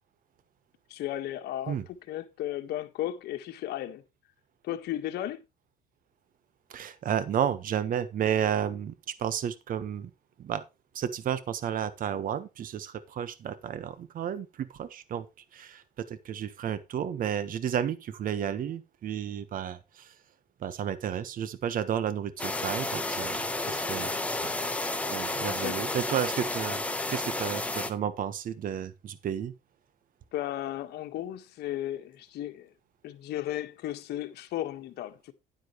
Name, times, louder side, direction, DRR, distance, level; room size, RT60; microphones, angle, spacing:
voice 1, 0.9-1.8 2.1-4.0 4.6-5.4 24.0-24.2 25.4-25.8 30.3-32.7 33.0-35.3, left 13 dB, 75° left, 1.6 m, -35 dB
voice 2, 6.7-10.1 10.4-10.6 10.9-15.3 15.5-20.1 20.6-24.1 24.4-24.6 25.1-26.8 27.1-29.5, right 9 dB, 55° right, 1.3 m, -32 dB
sound 1, 22.4-27.9, left 2 dB, 10° left, 1.5 m, -31 dB
10.5 x 10.0 x 3.1 m
cardioid pair, 110°, 17 cm